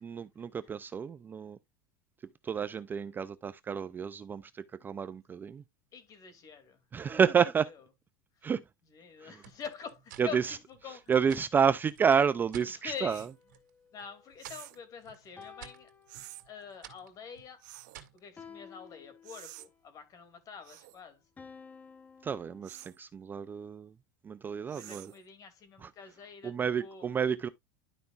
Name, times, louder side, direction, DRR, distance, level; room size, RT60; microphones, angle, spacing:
voice 1, 0.0-1.6 2.4-5.6 6.9-7.7 8.4-8.6 9.2-9.4 10.2-10.6 11.1-13.2 22.2-23.9 24.2-25.1 25.8-25.9 26.4-27.5, right 7 dB, 20° right, 0.4 m, -30 dB
voice 2, 5.9-7.7 8.4-8.5 8.9-11.1 12.7-13.3 13.9-15.9 16.5-17.6 18.1-21.2 24.7-27.0, left 6 dB, 35° left, 2.5 m, -46 dB
sound 1, 9.4-12.7 13.1-13.7 14.0-18.3, right 10 dB, 85° right, 1.9 m, -53 dB
sound 2, 13.0-14.8 15.4-16.8 18.4-19.8 21.4-22.8, left 6 dB, 15° left, 0.8 m, -54 dB
sound 3, 13.1-13.3 14.4-14.8 16.1-16.4 17.6-18.0 19.2-19.7 20.6-21.0 22.6-23.0 24.7-25.2, right 18 dB, 70° right, 0.8 m, -49 dB
12.0 x 5.1 x 2.4 m
supercardioid pair, 130°, 10 cm